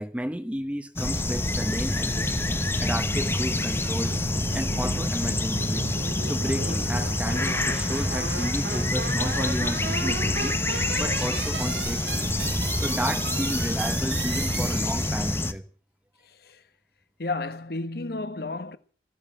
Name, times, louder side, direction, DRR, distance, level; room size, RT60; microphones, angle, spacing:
voice 1, 0.0-2.3 2.8-4.1 4.5-5.9 6.2-10.6 11.0-12.3 12.8-15.6, equal, 5° right, 1.1 m, -32 dB
sound 1, 1.0-15.5, left 2 dB, 15° left, 0.8 m, -27 dB
sound 2, 1.3-15.4, right 3 dB, 65° right, 1.9 m, -35 dB
voice 2, 16.2-16.6 17.2-18.8, left 3 dB, 55° left, 1.0 m, -32 dB
14.5 x 10.5 x 8.4 m
head